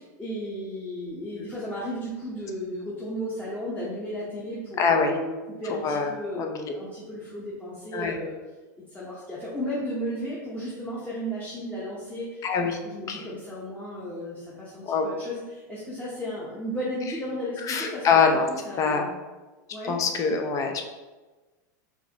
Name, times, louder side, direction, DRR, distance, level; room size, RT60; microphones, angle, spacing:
voice 1, 0.0-8.4 8.9-12.4 12.8-18.2 18.6-19.1 19.7-20.0, equal, 15° left, -7 dB, 1.0 m, -34 dB
voice 2, 4.8-5.1 5.8-6.5 7.9-8.2 12.4-12.8 13.1-13.2 14.8-15.1 17.6-18.5 18.8-19.0 19.8-20.9, left 5 dB, 30° left, 4 dB, 0.6 m, -24 dB
4.7 x 3.2 x 2.9 m, 1.2 s
hypercardioid pair, 110°, 10 cm